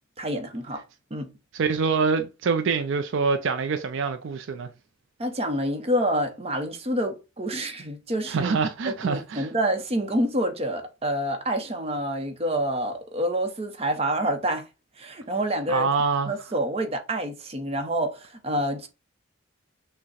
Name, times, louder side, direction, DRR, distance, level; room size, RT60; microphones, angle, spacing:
voice 1, 0.2-0.8 1.1-1.3 5.2-8.5 8.8-14.7 15.0-15.9 16.3-18.9, right 1 dB, 30° right, 0.7 m, -27 dB
voice 2, 1.5-4.7 8.3-9.5 15.7-16.3, right 5 dB, 60° right, 0.4 m, -25 dB
6.1 x 2.1 x 4.1 m
head